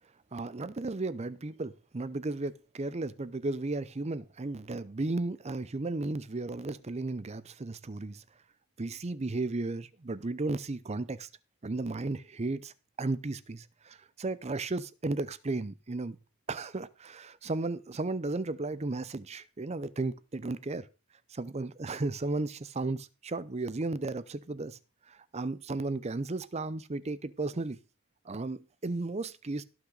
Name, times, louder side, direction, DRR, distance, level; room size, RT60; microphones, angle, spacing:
voice 1, 0.3-8.2 8.8-11.3 11.6-12.7 13.0-16.2 16.5-20.9 21.3-24.8 25.1-27.8 28.3-29.6, right 2 dB, 30° right, 0.6 m, -34 dB
17.5 x 5.9 x 3.9 m
head